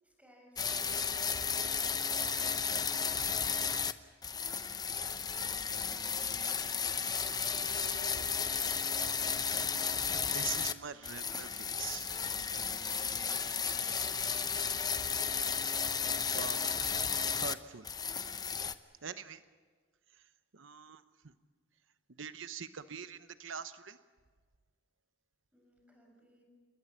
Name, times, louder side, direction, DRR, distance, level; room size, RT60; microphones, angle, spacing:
voice 1, 0.0-2.9 12.7-14.5 25.5-26.4, equal, 10° right, 0 dB, 6.9 m, -62 dB
sound 1, 0.6-3.9 4.2-10.7 11.0-17.5 17.8-18.7, left 6 dB, 20° left, 0.8 m, -33 dB
voice 2, 7.5-8.4 10.1-12.1 16.3-16.6 17.4-17.9 19.0-19.4 20.1-21.3 22.2-24.0, right 7 dB, 85° right, 12 dB, 0.8 m, -44 dB
28.5 x 20.5 x 7.3 m, 1.5 s
head